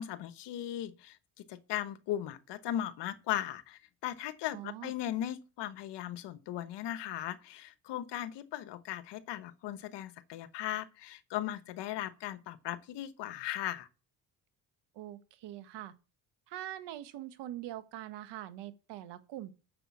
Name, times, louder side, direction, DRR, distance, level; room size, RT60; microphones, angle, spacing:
voice 1, 0.0-13.9, left 12 dB, 85° left, 1.2 m, -38 dB
voice 2, 4.5-4.9 14.9-15.9 16.5-19.5, right 13 dB, 85° right, 1.4 m, -43 dB
9.2 x 6.9 x 8.4 m
cardioid pair, 100°, 41 cm